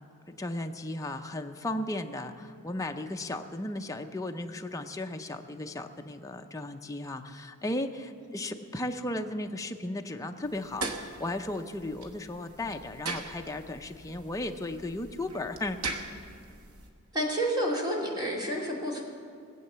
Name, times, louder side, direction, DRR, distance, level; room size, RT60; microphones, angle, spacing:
voice 1, 0.4-15.8, left 1 dB, 15° left, 5 dB, 0.6 m, -35 dB
sound 1, 10.4-16.9, right 3 dB, 80° right, 1.3 m, -41 dB
voice 2, 17.1-19.0, right 1 dB, 20° right, -2 dB, 2.5 m, -30 dB
19.5 x 8.2 x 6.8 m, 2.2 s
head